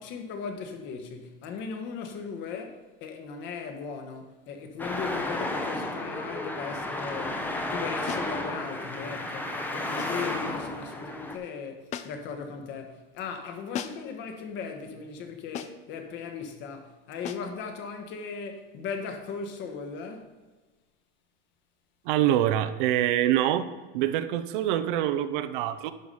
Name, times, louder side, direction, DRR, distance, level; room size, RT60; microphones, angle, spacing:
voice 1, 0.0-20.3, left 5 dB, 40° left, 1.3 m, -38 dB
Traffic noise roadway noise, 4.8-11.4, left 1 dB, 5° left, 0.8 m, -32 dB
sound 1, 8.1-8.4 10.0-10.3 11.9-12.3 13.7-14.2 15.5-15.9 17.2-17.6, left 9 dB, 25° left, 0.4 m, -38 dB
voice 2, 22.1-23.7 23.9-25.9, right 12 dB, 60° right, 0.7 m, -25 dB
11.0 x 4.9 x 5.5 m
supercardioid pair, 150°, 29 cm